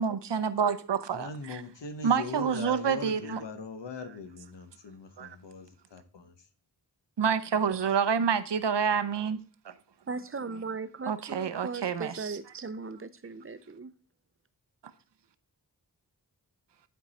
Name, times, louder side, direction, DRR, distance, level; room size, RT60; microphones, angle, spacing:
voice 1, 0.0-1.6 2.0-3.4 5.2-5.4 7.2-9.4 9.6-9.7 11.1-12.6, right 7 dB, 80° right, 0.7 m, -28 dB
voice 2, 1.1-6.3, left 3 dB, 90° left, 1.1 m, -41 dB
voice 3, 10.1-13.9, right 4 dB, 30° right, 0.6 m, -38 dB
10.5 x 4.6 x 4.2 m
wide cardioid pair, 85°, 41 cm